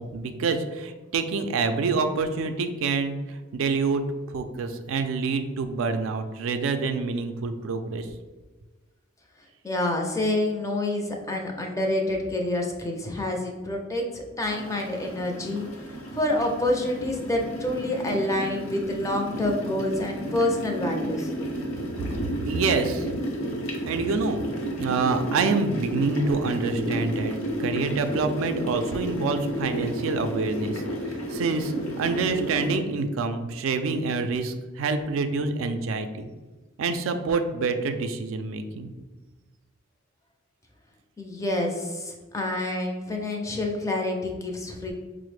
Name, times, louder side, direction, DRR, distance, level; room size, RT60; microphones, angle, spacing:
voice 1, 0.0-4.0 4.3-8.1 22.4-23.1 23.8-24.4 24.8-36.3 36.8-38.9, right 4 dB, 75° right, 7 dB, 0.3 m, -27 dB
voice 2, 9.6-15.6 16.1-21.3 41.2-44.9, left 1 dB, 15° left, 1 dB, 0.4 m, -27 dB
sound 1, 14.4-32.8, right 1 dB, 80° left, 0.7 m, -32 dB
4.8 x 2.0 x 3.2 m, 1.3 s
head